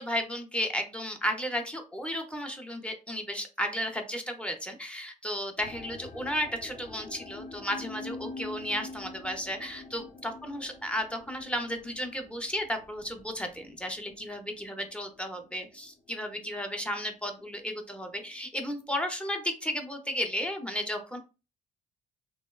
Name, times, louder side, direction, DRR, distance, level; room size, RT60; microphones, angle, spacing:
voice 1, 0.0-21.2, equal, 5° left, 4 dB, 0.5 m, -34 dB
sound 1, 5.6-16.7 17.0-17.6 18.2-18.3, left 3 dB, 45° left, 0.7 m, -46 dB
2.9 x 2.1 x 2.2 m, 0.32 s
cardioid pair, 90°, 20 cm